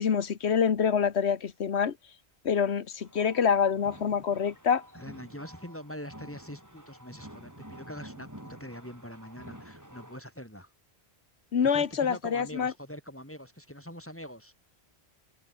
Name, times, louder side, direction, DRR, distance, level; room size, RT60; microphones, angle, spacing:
voice 1, 0.0-2.0 2.4-4.8 11.5-12.7, left 7 dB, 85° left, 1.4 m, -26 dB
sound 1, 3.0-10.2, right 1 dB, 15° right, 5.0 m, -49 dB
voice 2, 4.9-10.7 11.7-14.5, equal, 10° left, 7.1 m, -43 dB
omnidirectional pair, 1.1 m